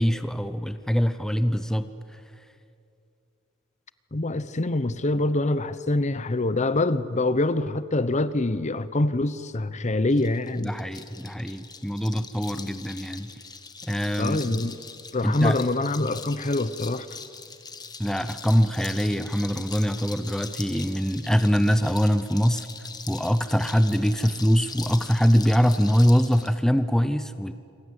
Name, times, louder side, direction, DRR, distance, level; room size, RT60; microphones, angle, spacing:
voice 1, 0.0-1.9 10.6-13.3 13.8-14.7 15.2-15.6 18.0-22.7 23.1-27.5, equal, 5° left, 0.7 m, -23 dB
voice 2, 4.1-10.7 14.2-14.8 15.1-17.1, left 2 dB, 35° left, 0.8 m, -25 dB
sound 1, 10.1-26.5, left 5 dB, 20° left, 1.3 m, -41 dB
27.5 x 25.0 x 8.1 m
head